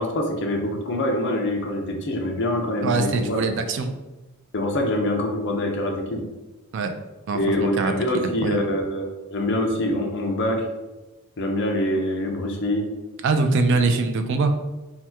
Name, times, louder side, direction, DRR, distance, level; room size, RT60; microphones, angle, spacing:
voice 1, 0.0-3.4 4.5-6.2 7.3-10.7 11.4-12.9 13.7-13.8, left 1 dB, 50° left, 2 dB, 0.5 m, -25 dB
voice 2, 2.8-3.9 6.7-6.9 7.3-7.9 8.4-8.6 13.2-14.5, right 3 dB, 55° right, 7 dB, 0.3 m, -22 dB
2.8 x 2.2 x 3.3 m, 1.1 s
head